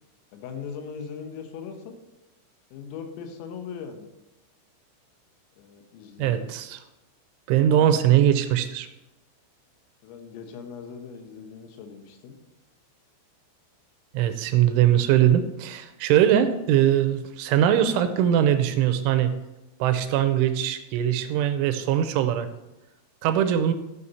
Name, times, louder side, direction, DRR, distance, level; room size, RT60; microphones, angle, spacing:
voice 1, 0.3-2.0 2.7-4.1 5.6-6.5 7.7-8.1 10.0-12.4 16.1-16.2, left 6 dB, 85° left, 6 dB, 3.8 m, -39 dB
voice 2, 6.2-6.8 7.5-8.9 14.1-19.3 19.8-22.5 23.2-23.7, right 10 dB, 85° right, 9 dB, 3.0 m, -21 dB
12.5 x 6.8 x 4.2 m, 0.99 s
omnidirectional pair, 5.8 m